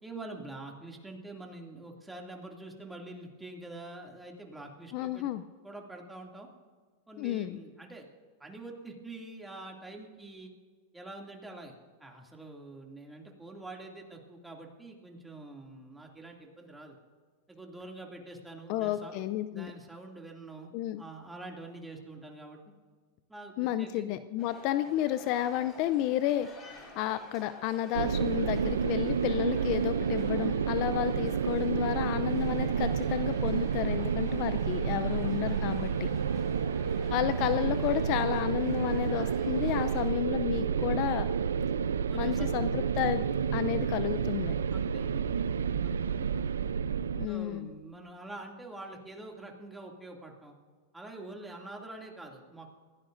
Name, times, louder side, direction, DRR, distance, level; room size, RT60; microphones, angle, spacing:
voice 1, 0.0-5.3 5.6-6.5 7.1-8.1 8.4-10.5 10.9-11.7 12.0-17.0 17.5-19.2 19.5-20.7 21.0-22.6 23.3-24.2 36.6-36.7 42.1-42.7 44.7-45.4 45.8-46.6 47.3-50.5 50.9-52.7, right 2 dB, 5° right, 0 dB, 2.6 m, -46 dB
voice 2, 4.9-5.4 7.2-7.6 18.7-19.7 20.7-21.0 23.6-36.2 37.1-41.3 42.1-44.5 47.2-47.7, left 12 dB, 50° left, 12 dB, 0.6 m, -31 dB
sound 1, 24.4-40.1, left 2 dB, 25° left, 5.1 m, -50 dB
sound 2, 27.9-47.3, right 7 dB, 90° right, 0.6 m, -30 dB
22.0 x 16.5 x 2.7 m, 1.5 s
hypercardioid pair, 115°, 0 cm